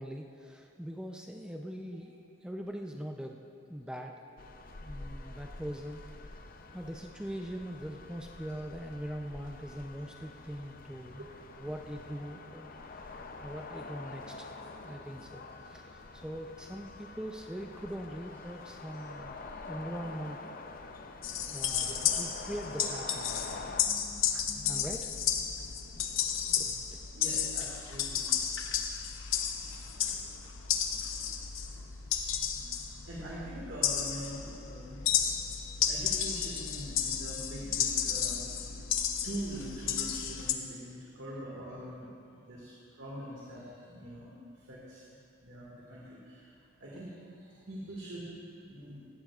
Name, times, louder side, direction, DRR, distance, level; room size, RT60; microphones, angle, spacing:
voice 1, 0.0-2.1 2.4-3.4 3.7-4.1 4.8-6.0 6.4-6.5 6.7-11.3 11.6-13.1 13.4-14.5 14.8-19.3 19.7-20.5 21.5-23.3 23.9-25.1 26.5-27.0, equal, 5° right, 2 dB, 0.5 m, -42 dB
sound 1, 4.4-23.8, left 3 dB, 45° left, 0.6 m, -46 dB
voice 2, 19.1-19.6 21.8-22.3 23.0-23.1 26.2-26.7 27.1-29.0 32.1-32.2 33.1-35.4 35.8-38.6 39.2-42.1 42.4-45.0 45.3-46.5 46.8-48.4 48.7-49.0, right 1 dB, 60° right, -5 dB, 1.9 m, -44 dB
sound 2, 21.2-40.5, left 8 dB, 75° left, 0.8 m, -33 dB
17.0 x 15.0 x 2.4 m, 2.5 s
head